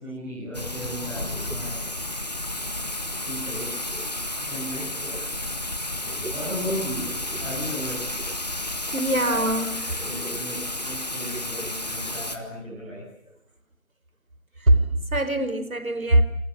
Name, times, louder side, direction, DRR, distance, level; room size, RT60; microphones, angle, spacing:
voice 1, 0.0-1.8 3.2-3.7 4.4-5.0 6.0-8.0 9.1-9.3 9.8-13.0, equal, 5° right, -10 dB, 6.4 m, -35 dB
Thunder / Rain, 0.5-12.4, left 1 dB, 30° left, 1.9 m, -32 dB
voice 2, 5.0-5.3 6.2-6.3 7.3-7.4 8.3-8.5 8.9-10.4 11.2-11.3 12.0-12.2 14.6-16.2, right 1 dB, 75° right, 11 dB, 4.9 m, -24 dB
28.0 x 26.5 x 7.4 m, 0.70 s
figure-of-eight pair, 175°, 42 cm